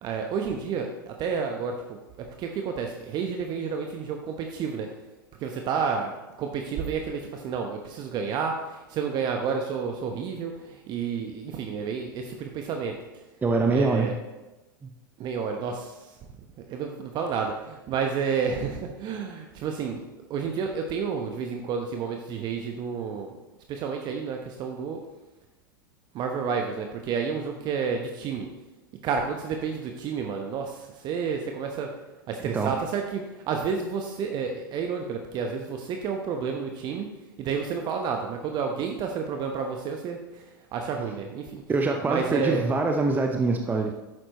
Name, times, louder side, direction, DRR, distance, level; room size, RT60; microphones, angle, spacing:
voice 1, 0.0-4.9 5.4-13.0 13.7-14.2 15.2-16.1 16.6-20.0 20.3-23.4 23.7-25.0 26.1-28.5 29.0-31.9 32.3-37.1 37.4-41.6 42.0-42.7, right 6 dB, 40° right, 3 dB, 1.0 m, -30 dB
voice 2, 13.4-14.1 14.8-14.9 32.5-32.7 41.7-43.9, right 3 dB, 15° right, 4 dB, 0.7 m, -24 dB
11.0 x 8.9 x 3.1 m, 1.1 s
figure-of-eight pair, 90°, 12 cm